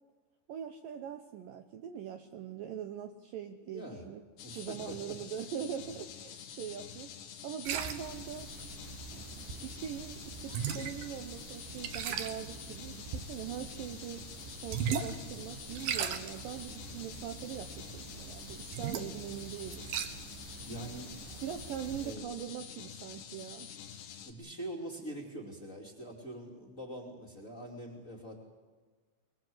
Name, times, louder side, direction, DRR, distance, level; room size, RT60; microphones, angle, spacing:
voice 1, 0.5-4.2 4.5-7.1 7.4-8.5 9.3-19.9 21.4-23.7, right 9 dB, 90° right, 7 dB, 1.9 m, -42 dB
voice 2, 3.6-4.1 4.4-5.2 20.7-21.4 22.0-22.3 24.2-28.3, right 1 dB, 25° left, 1 dB, 2.1 m, -44 dB
sound 1, 4.4-24.3, left 9 dB, 80° left, 4.1 m, -48 dB
sound 2, 7.6-22.1, right 7 dB, 65° right, 2.4 m, -40 dB
23.0 x 22.0 x 7.8 m, 1.4 s
omnidirectional pair, 5.3 m